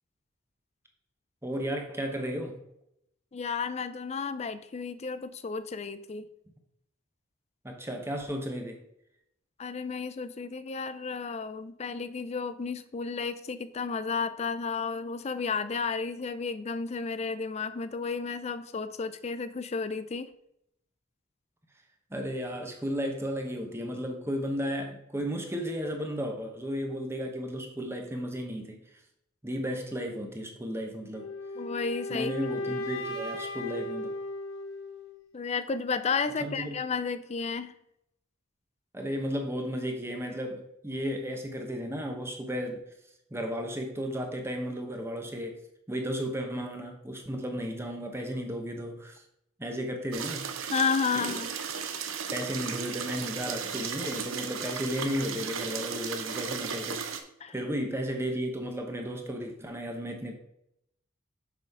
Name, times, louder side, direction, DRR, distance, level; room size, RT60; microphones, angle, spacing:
voice 1, 1.4-2.5 7.6-8.8 22.1-28.8 29.4-31.3 32.1-34.1 36.4-36.8 38.9-42.8 43.3-45.6 45.9-49.2 49.6-50.4 51.2-51.3 52.3-57.2 57.5-60.3, equal, 10° right, 3 dB, 0.9 m, -34 dB
voice 2, 3.3-6.3 9.6-20.3 31.6-32.3 35.3-37.7 50.7-51.5 57.4-57.5, left 5 dB, 30° left, 13 dB, 0.4 m, -32 dB
sound 1, 31.1-35.2, left 1 dB, 90° left, 1.5 m, -36 dB
sound 2, 50.1-57.2, right 7 dB, 85° right, 0.8 m, -35 dB
6.8 x 5.1 x 4.8 m, 0.78 s
head